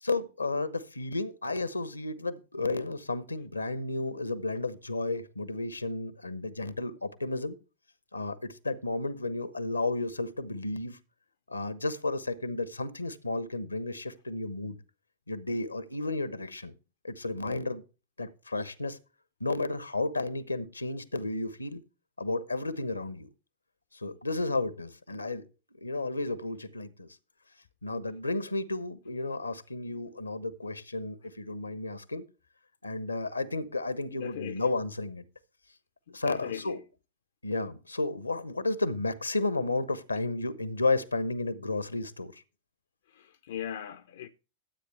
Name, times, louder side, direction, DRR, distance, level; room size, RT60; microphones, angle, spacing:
voice 1, 0.0-7.6 8.1-11.0 11.5-14.8 15.3-16.7 17.0-17.8 18.2-19.0 19.4-21.8 22.2-23.3 23.9-25.5 25.8-27.1 27.8-32.2 32.8-35.3 36.1-36.8 37.4-42.4, left 2 dB, 80° left, 1.0 m, -32 dB
voice 2, 34.1-34.7 36.1-36.8 43.1-44.3, left 10 dB, 60° left, 0.6 m, -39 dB
13.0 x 8.3 x 3.3 m
figure-of-eight pair, 90°, 0 cm